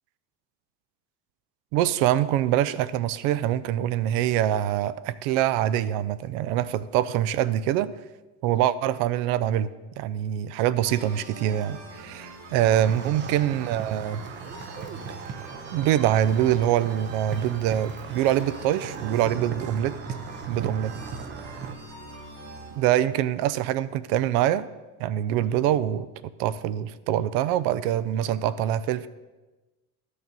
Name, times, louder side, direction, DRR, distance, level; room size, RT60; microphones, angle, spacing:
voice 1, 1.7-7.9 8.4-9.7 10.0-14.3 15.7-20.0 20.5-21.0 22.8-24.7 25.0-29.1, right 11 dB, 90° right, 17 dB, 0.6 m, -24 dB
sound 1, 10.8-23.1, right 2 dB, 60° right, 3.2 m, -43 dB
sound 2, 12.6-21.8, right 6 dB, 30° right, 0.5 m, -38 dB
12.5 x 6.7 x 5.3 m, 1.2 s
cardioid pair, 170°, 40 cm